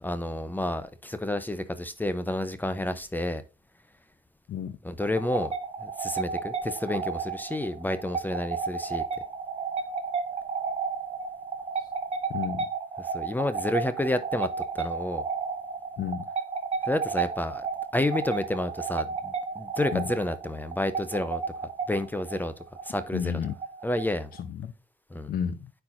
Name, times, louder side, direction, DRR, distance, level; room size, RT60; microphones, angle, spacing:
voice 1, 0.0-3.4 4.8-5.5 5.8-9.0 13.0-14.5 14.7-15.2 16.9-17.7 17.9-21.4 21.9-22.5 22.8-23.3 23.8-24.3 25.1-25.3, left 1 dB, 10° left, 0.6 m, -30 dB
sound 1, 5.0-24.4, right 5 dB, 40° right, 0.9 m, -33 dB
voice 2, 12.3-12.7 16.0-16.3 19.9-20.0 23.1-23.5 24.5-24.7 25.3-25.7, left 8 dB, 70° left, 0.6 m, -31 dB
9.7 x 4.5 x 2.5 m
cardioid pair, 125°, 16 cm